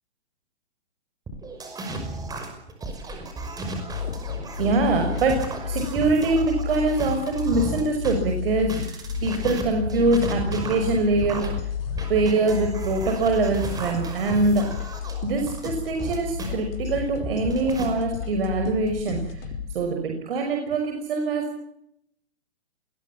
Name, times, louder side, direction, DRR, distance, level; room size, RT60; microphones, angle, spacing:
sound 1, 1.3-8.1 8.6-16.5 17.0-17.9, right 2 dB, 10° right, 5.8 m, -35 dB
sound 2, 3.7-19.7, left 8 dB, 60° left, 5.1 m, -32 dB
voice 1, 4.6-11.5 12.1-14.7 15.2-19.4 19.7-21.6, right 3 dB, 60° right, 4 dB, 5.8 m, -24 dB
26.0 x 21.0 x 7.4 m, 0.75 s
hypercardioid pair, 140°, 33 cm